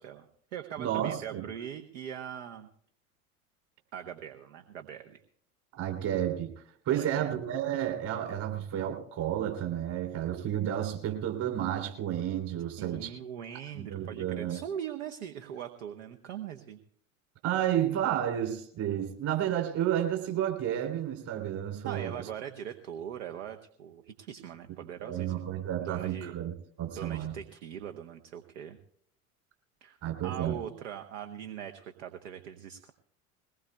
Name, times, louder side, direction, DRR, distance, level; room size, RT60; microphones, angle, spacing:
voice 1, 0.0-2.7 3.9-5.2 6.9-7.3 12.8-16.8 21.8-25.5 25.8-26.3 26.9-28.8 29.8-30.0 30.2-32.9, right 9 dB, 60° right, 6 dB, 1.0 m, -41 dB
voice 2, 0.8-1.4 5.8-6.5 6.8-13.1 13.7-14.6 17.4-22.1 25.0-26.5 26.8-27.3 30.0-30.6, right 11 dB, 45° right, 3 dB, 3.2 m, -31 dB
21.5 x 19.0 x 2.3 m, 0.65 s
figure-of-eight pair, 75°, 42 cm